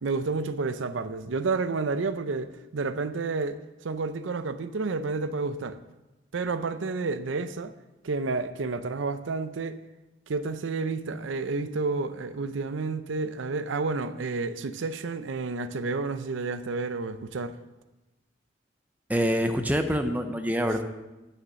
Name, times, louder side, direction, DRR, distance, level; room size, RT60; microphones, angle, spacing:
voice 1, 0.0-5.8 6.3-7.7 8.0-9.8 10.3-17.6, right 3 dB, 80° right, 0.5 m, -30 dB
voice 2, 19.1-20.8, equal, 10° right, 0.5 m, -25 dB
9.3 x 6.5 x 6.3 m
head